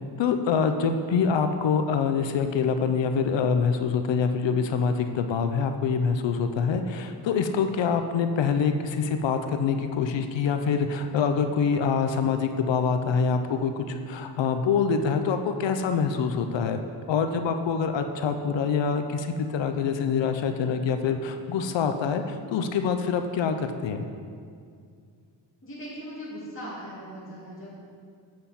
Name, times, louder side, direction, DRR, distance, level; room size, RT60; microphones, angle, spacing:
voice 1, 0.2-16.8 17.1-24.0, left 6 dB, 70° left, 7 dB, 0.6 m, -25 dB
voice 2, 25.6-27.8, equal, 25° left, -8 dB, 2.0 m, -39 dB
7.7 x 7.0 x 4.2 m, 2.3 s
wide cardioid pair, 150°, 45 cm